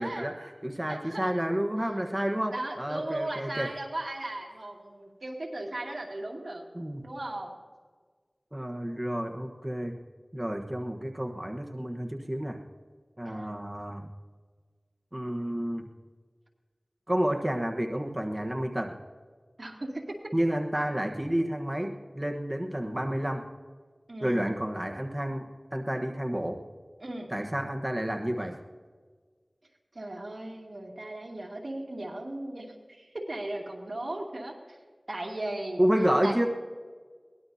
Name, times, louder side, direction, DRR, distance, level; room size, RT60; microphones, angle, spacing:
voice 1, 0.0-3.7 6.7-7.0 8.5-10.0 10.3-12.6 13.2-14.1 15.1-15.9 17.1-18.9 20.3-23.4 24.2-26.6 27.3-28.6 35.8-36.5, equal, 25° right, 3 dB, 1.2 m, -30 dB
voice 2, 0.9-1.4 2.5-6.6 7.0-7.6 13.3-13.6 19.6-20.2 24.1-24.5 27.0-27.3 29.9-34.8 35.1-35.8 36.2-36.4, right 1 dB, 80° right, -1 dB, 2.6 m, -37 dB
22.0 x 19.0 x 2.8 m, 1.5 s
wide cardioid pair, 45°, 0 cm